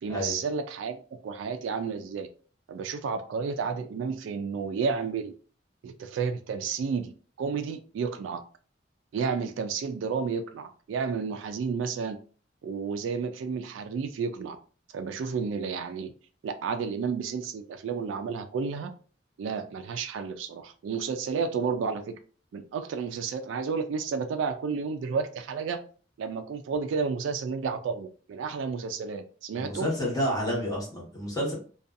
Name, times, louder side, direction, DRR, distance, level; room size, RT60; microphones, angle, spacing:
voice 1, 0.0-2.3 2.7-5.3 5.8-8.4 9.1-12.2 12.6-14.6 14.9-16.1 16.4-18.9 19.4-22.2 22.5-25.8 26.2-29.9, right 5 dB, 85° right, 8 dB, 0.3 m, -31 dB
voice 2, 29.5-31.5, equal, 20° left, -4 dB, 1.1 m, -29 dB
2.6 x 2.3 x 2.4 m, 0.41 s
head